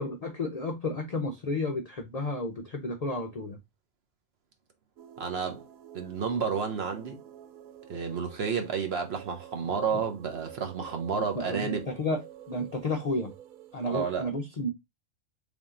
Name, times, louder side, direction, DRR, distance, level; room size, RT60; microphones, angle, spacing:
voice 1, 0.0-3.6 11.2-12.2 12.5-13.3 13.7-14.7, left 2 dB, 55° left, 0.4 m, -32 dB
sound 1, 5.0-14.2, right 10 dB, 80° right, 1.0 m, -49 dB
voice 2, 5.2-5.6 5.9-7.2 7.9-11.9 13.9-14.3, right 6 dB, 55° right, 0.8 m, -31 dB
3.5 x 2.7 x 3.6 m
omnidirectional pair, 1.4 m